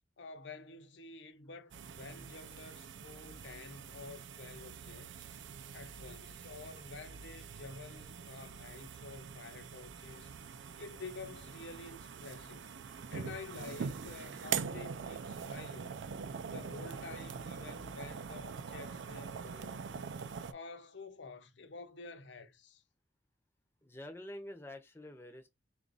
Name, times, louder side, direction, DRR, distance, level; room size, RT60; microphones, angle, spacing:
voice 1, 0.2-5.2 5.7-10.3 10.8-12.6 13.1-16.1 16.5-20.0 20.5-22.8, left 3 dB, 75° left, 0.7 m, -49 dB
sound 1, 1.7-20.5, right 6 dB, 80° right, 0.4 m, -44 dB
voice 2, 5.4-5.8 23.8-25.5, left 1 dB, 15° left, 0.6 m, -48 dB
3.9 x 2.4 x 3.9 m
head